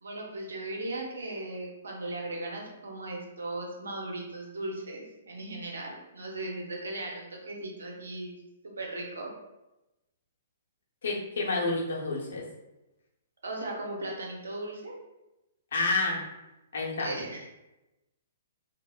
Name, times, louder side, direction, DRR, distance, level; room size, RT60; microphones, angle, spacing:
voice 1, 0.0-8.3 8.6-9.3 13.4-14.9 17.0-17.5, right 2 dB, 75° right, 0 dB, 0.6 m, -37 dB
voice 2, 11.0-12.4 15.7-16.3 16.7-17.1, left 3 dB, 65° left, -4 dB, 0.7 m, -29 dB
3.0 x 2.0 x 2.2 m, 0.98 s
figure-of-eight pair, 120°, 0 cm